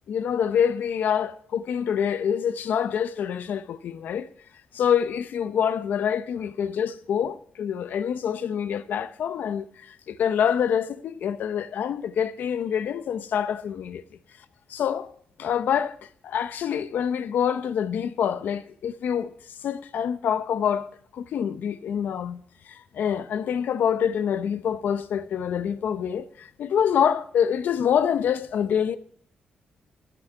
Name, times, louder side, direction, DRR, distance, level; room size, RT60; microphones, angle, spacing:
voice 1, 0.1-4.3 4.7-14.0 14.7-15.1 15.4-16.0 16.2-19.3 19.6-22.4 22.7-29.0, left 8 dB, 80° left, 0.7 m, -26 dB
15.5 x 6.1 x 4.6 m
wide cardioid pair, 125°, 3 cm